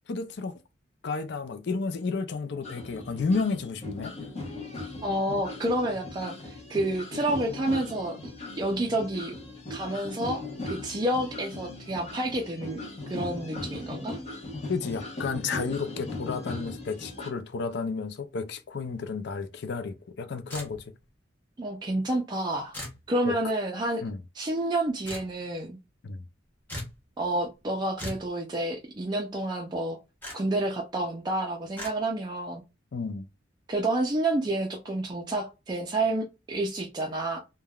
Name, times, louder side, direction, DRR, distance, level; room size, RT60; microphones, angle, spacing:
voice 1, 0.1-0.5 1.0-4.2 14.7-20.8 23.2-23.4 24.0-24.2 26.0-26.2 32.9-33.3, left 4 dB, 65° left, 0.4 m, -32 dB
sound 1, 2.6-17.3, left 2 dB, 35° left, 0.8 m, -39 dB
voice 2, 5.0-8.2 8.6-9.3 9.7-12.8 13.1-14.2 21.6-22.7 23.1-24.0 24.4-25.8 27.2-30.0 30.3-32.6 33.7-37.4, right 1 dB, 25° right, 0.4 m, -29 dB
sound 2, 20.5-21.0 22.7-23.0 25.0-25.3 26.7-27.0 28.0-28.3 30.2-30.4 31.8-31.9, left 1 dB, 10° left, 1.1 m, -38 dB
3.4 x 2.2 x 2.3 m
head